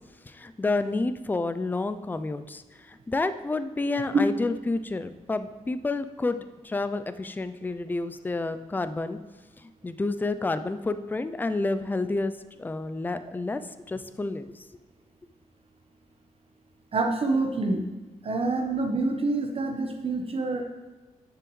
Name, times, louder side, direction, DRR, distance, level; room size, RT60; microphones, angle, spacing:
voice 1, 0.3-6.4 6.6-9.2 9.6-12.3 12.6-13.6 13.9-14.6, left 3 dB, 15° left, 11 dB, 0.3 m, -29 dB
voice 2, 16.9-17.8 18.2-20.6, right 3 dB, 45° right, 4 dB, 1.1 m, -27 dB
10.5 x 6.9 x 3.1 m, 1.2 s
cardioid pair, 105°, 14 cm